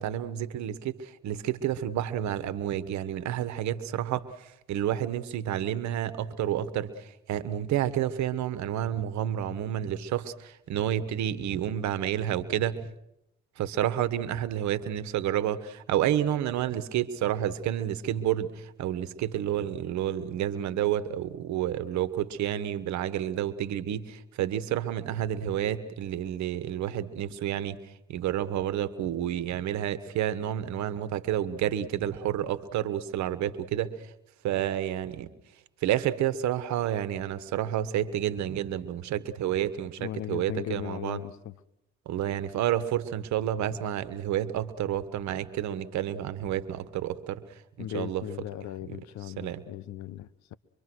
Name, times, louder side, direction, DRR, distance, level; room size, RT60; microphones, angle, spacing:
voice 1, 0.0-12.9 13.6-27.8 28.1-34.1 34.4-35.3 35.8-41.2 42.0-48.2 48.9-49.6, right 11 dB, 75° right, 1.4 m, -30 dB
voice 2, 40.0-41.5 47.8-50.5, left 12 dB, 70° left, 1.0 m, -37 dB
25.0 x 24.0 x 6.3 m
hypercardioid pair, 55°, 29 cm